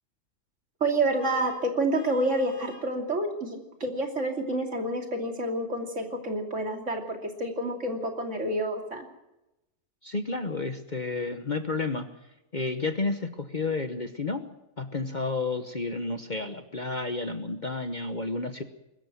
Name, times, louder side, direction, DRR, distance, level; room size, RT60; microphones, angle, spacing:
voice 1, 0.8-9.0, right 2 dB, 55° right, 3 dB, 3.1 m, -28 dB
Vehicle horn car horn honking, 1.2-3.0, left 4 dB, 80° left, 3.6 m, -48 dB
voice 2, 10.0-12.1 12.5-18.6, left 3 dB, 35° left, 8 dB, 1.1 m, -31 dB
22.0 x 13.0 x 9.2 m, 0.95 s
omnidirectional pair, 1.5 m